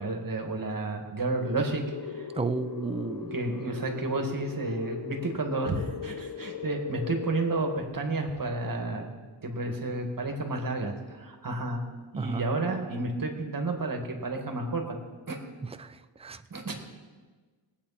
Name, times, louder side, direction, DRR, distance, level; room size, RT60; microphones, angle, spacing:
voice 1, 0.0-2.3 3.3-9.2 9.4-11.8 12.1-15.0 15.3-15.4 16.5-16.7, right 2 dB, 45° right, 3 dB, 2.0 m, -31 dB
sound 1, 1.4-7.8, left 6 dB, 45° left, 0.8 m, -38 dB
voice 2, 2.3-3.4 12.2-12.5 15.6-16.4, right 4 dB, 15° right, 11 dB, 0.5 m, -33 dB
21.0 x 8.5 x 4.3 m, 1.4 s
wide cardioid pair, 95°, 48 cm